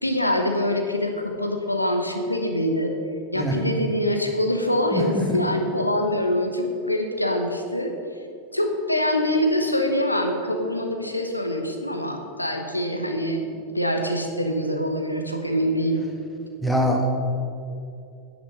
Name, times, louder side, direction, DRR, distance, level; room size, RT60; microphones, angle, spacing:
voice 1, 0.0-2.9 3.3-7.9 8.5-16.1, left 1 dB, 85° left, 4 dB, 1.0 m, -24 dB
voice 2, 4.9-5.2 16.6-17.1, equal, ahead, 1 dB, 1.7 m, -23 dB
9.9 x 9.2 x 5.4 m, 2.6 s
figure-of-eight pair, 90°, 0 cm